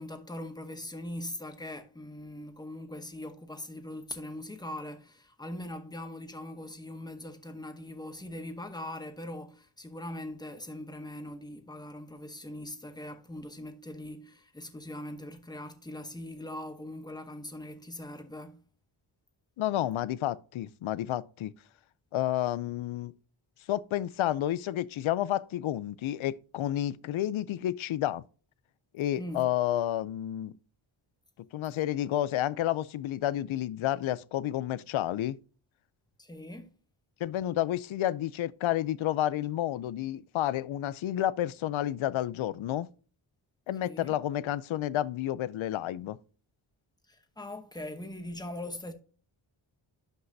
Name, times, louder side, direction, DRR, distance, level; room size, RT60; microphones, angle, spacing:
voice 1, 0.0-18.6 29.1-29.5 36.2-36.7 43.8-44.2 47.1-48.9, left 1 dB, 10° left, 0.9 m, -41 dB
voice 2, 19.6-21.5 22.1-23.1 23.7-28.2 28.9-30.5 31.5-35.4 37.2-42.9 43.7-46.2, left 12 dB, 70° left, 0.6 m, -30 dB
11.5 x 5.5 x 2.7 m
wide cardioid pair, 155°, 49 cm